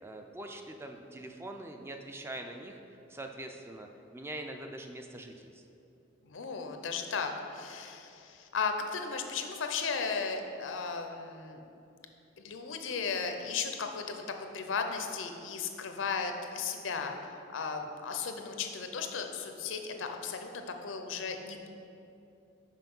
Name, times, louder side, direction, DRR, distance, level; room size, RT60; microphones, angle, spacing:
voice 1, 0.0-2.8 3.1-5.6, right 1 dB, 15° right, 4 dB, 0.3 m, -43 dB
voice 2, 6.3-11.6 12.4-17.2 17.5-21.7, left 5 dB, 85° left, 5 dB, 0.6 m, -35 dB
5.7 x 5.0 x 5.4 m, 2.7 s
head